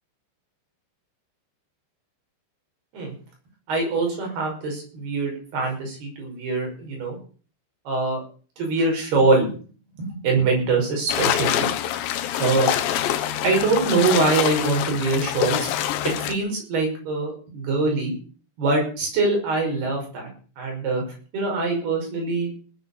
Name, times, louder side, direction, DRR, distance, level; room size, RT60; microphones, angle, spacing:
voice 1, 3.7-7.2 7.9-8.2 8.6-9.5 10.0-11.7 12.4-12.7 13.4-15.7 16.0-18.1 18.6-20.3 20.6-21.0 21.3-22.6, right 3 dB, 55° right, 1 dB, 7.6 m, -23 dB
sound 1, 11.1-16.4, left 11 dB, 75° left, 3.2 m, -25 dB
19.0 x 8.5 x 7.2 m, 0.41 s
omnidirectional pair, 5.5 m